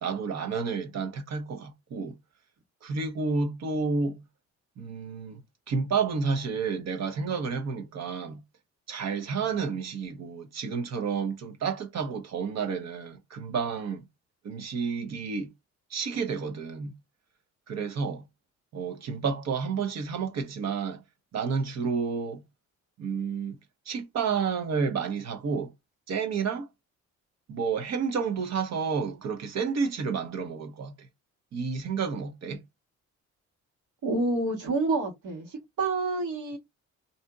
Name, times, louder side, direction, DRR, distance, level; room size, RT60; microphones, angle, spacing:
voice 1, 0.0-2.1 2.8-4.2 4.8-5.4 5.7-8.4 8.9-14.1 14.4-15.5 15.9-16.9 17.7-18.2 18.7-21.0 21.3-22.4 23.0-23.6 23.9-25.7 26.1-26.7 27.5-30.9 31.5-32.6, right 5 dB, 60° right, 0.9 m, -30 dB
voice 2, 34.0-35.5 35.8-36.6, right 3 dB, 80° right, 1.6 m, -28 dB
2.7 x 2.5 x 3.5 m
cardioid pair, 90°, 30 cm